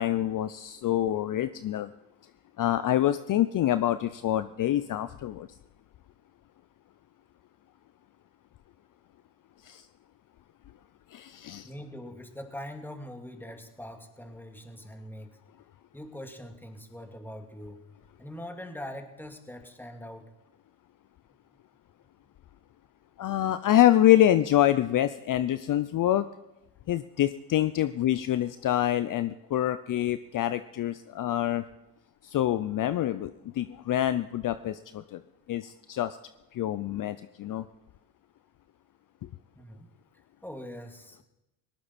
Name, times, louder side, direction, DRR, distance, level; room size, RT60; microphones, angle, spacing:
voice 1, 0.0-1.9 2.6-5.5 9.6-9.8 11.1-11.7 23.2-26.3 26.9-31.6 32.2-35.2 35.5-36.2 36.5-37.6, left 12 dB, 45° left, 13 dB, 0.7 m, -26 dB
voice 2, 11.6-15.4 15.9-17.8 18.2-20.3 39.6-39.9 40.4-41.2, left 1 dB, 5° left, 4 dB, 2.3 m, -42 dB
19.0 x 17.5 x 4.3 m, 0.96 s
supercardioid pair, 80°, 44 cm